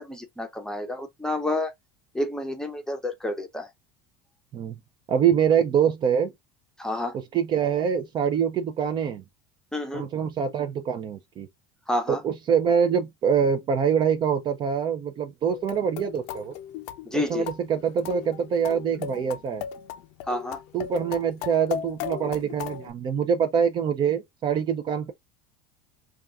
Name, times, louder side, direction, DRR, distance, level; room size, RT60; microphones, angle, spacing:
voice 1, 0.0-1.7 2.1-3.7 6.8-7.2 9.7-10.1 11.9-12.2 17.1-17.5 20.3-20.6, left 1 dB, 5° left, 0.6 m, -29 dB
voice 2, 5.1-6.3 7.1-9.2 9.9-11.5 12.1-16.5 17.1-19.6 20.7-25.1, right 7 dB, 40° right, 0.5 m, -25 dB
sound 1, 15.5-22.9, left 10 dB, 65° left, 0.5 m, -37 dB
2.4 x 2.3 x 3.4 m
supercardioid pair, 110°, 12 cm